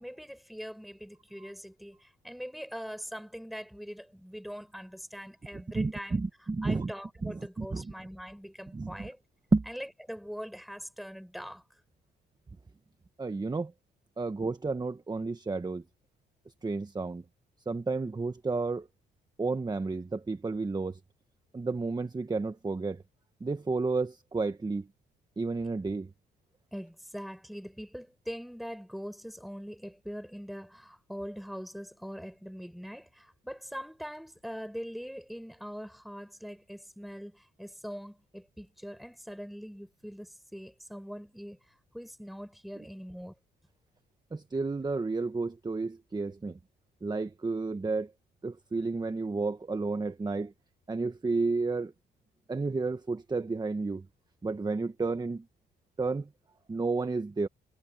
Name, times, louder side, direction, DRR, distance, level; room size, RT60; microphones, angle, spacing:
voice 1, 0.0-2.0 2.2-6.2 6.6-9.2 9.7-11.6 26.7-41.6 41.9-43.3, equal, ahead, 7.2 m, -42 dB
voice 2, 5.7-6.9 7.2-7.9 8.7-9.1 9.5-9.6 13.2-13.7 14.2-15.8 16.6-17.2 17.7-18.9 19.4-21.0 21.5-23.0 23.4-24.9 25.4-26.1 44.3-46.6 47.0-48.1 48.4-50.5 50.9-51.9 52.5-54.0 54.4-55.4 56.0-56.3 56.7-57.5, right 3 dB, 20° right, 1.2 m, -31 dB
cardioid pair, 90°, 20 cm